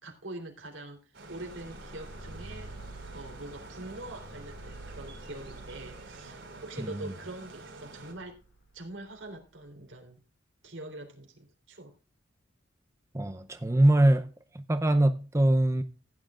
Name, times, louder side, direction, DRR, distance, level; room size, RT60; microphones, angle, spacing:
voice 1, 0.0-2.7 3.1-8.4 8.7-10.2 10.6-11.9, right 2 dB, 90° right, 3.5 m, -44 dB
sound 1, 1.1-8.1, right 3 dB, 65° right, 4.1 m, -48 dB
sound 2, 1.2-9.5, right 1 dB, 75° left, 2.2 m, -48 dB
voice 2, 6.8-7.1 13.1-14.3 14.5-15.8, right 1 dB, 15° right, 0.6 m, -23 dB
15.0 x 9.8 x 2.4 m
head